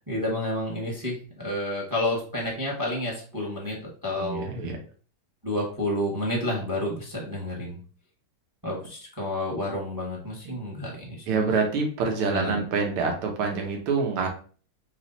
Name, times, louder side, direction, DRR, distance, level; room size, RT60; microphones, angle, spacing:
voice 1, 0.1-4.5 5.4-7.8 8.6-11.4 12.3-12.6, left 1 dB, 15° right, -2 dB, 0.9 m, -30 dB
voice 2, 4.2-4.8 11.3-14.3, right 4 dB, 90° right, 2 dB, 2.0 m, -26 dB
4.0 x 3.2 x 3.9 m, 0.41 s
omnidirectional pair, 2.3 m